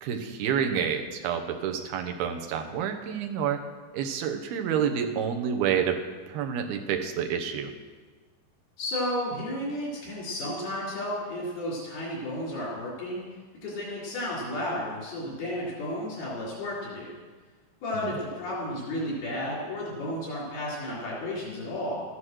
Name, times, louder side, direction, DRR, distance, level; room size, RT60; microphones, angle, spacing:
voice 1, 0.0-3.6 3.9-7.7 18.0-18.1, right 8 dB, 85° right, 5 dB, 3.0 m, -29 dB
voice 2, 8.8-13.3 13.6-17.1 17.8-22.0, left 1 dB, 80° left, -6 dB, 6.1 m, -32 dB
14.5 x 11.5 x 6.3 m, 1.4 s
omnidirectional pair, 4.2 m